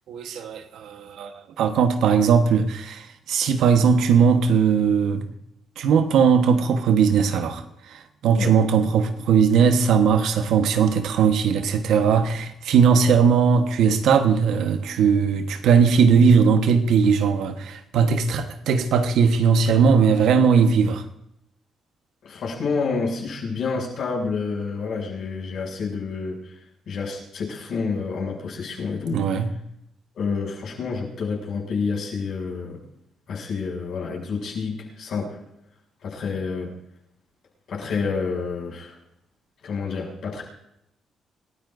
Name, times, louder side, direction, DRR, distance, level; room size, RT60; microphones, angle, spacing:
voice 1, 0.1-5.3 5.8-7.6 7.9-21.0 29.1-29.5, right 6 dB, 80° right, 1.2 m, -19 dB
voice 2, 22.2-26.5 26.9-29.2 30.1-32.8 33.3-35.4 36.0-36.7 37.7-38.9 39.6-40.4, left 4 dB, 65° left, 6.9 m, -28 dB
27.0 x 14.0 x 2.6 m
cardioid pair, 90°, 0 cm